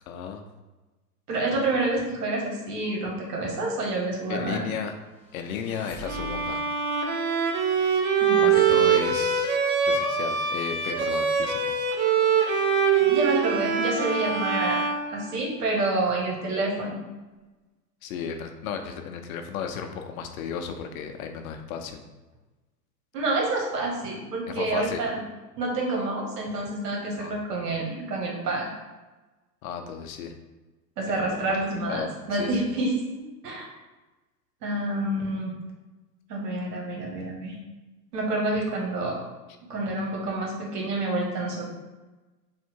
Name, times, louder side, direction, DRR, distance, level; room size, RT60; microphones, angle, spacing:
voice 1, 0.1-0.4 4.3-4.9 5.3-6.7 8.4-9.6 9.8-11.8 18.0-22.0 24.5-25.0 27.2-27.3 29.6-30.3 31.5-31.6 31.9-32.1 32.4-32.7, left 7 dB, 60° left, 5 dB, 0.7 m, -34 dB
voice 2, 1.3-4.7 8.2-8.9 12.4-12.5 13.0-14.8 15.1-17.0 23.1-25.2 25.6-28.7 31.0-33.0 33.4-33.7 34.6-35.5 36.3-37.6 38.1-39.2 39.7-41.6, right 2 dB, 80° right, -1 dB, 1.5 m, -28 dB
sound 1, 5.1-6.8, left 3 dB, 5° left, 0.9 m, -44 dB
Bowed string instrument, 6.0-15.8, right 6 dB, 45° right, 0.7 m, -24 dB
3.6 x 2.5 x 4.4 m, 1.2 s
hypercardioid pair, 120°, 47 cm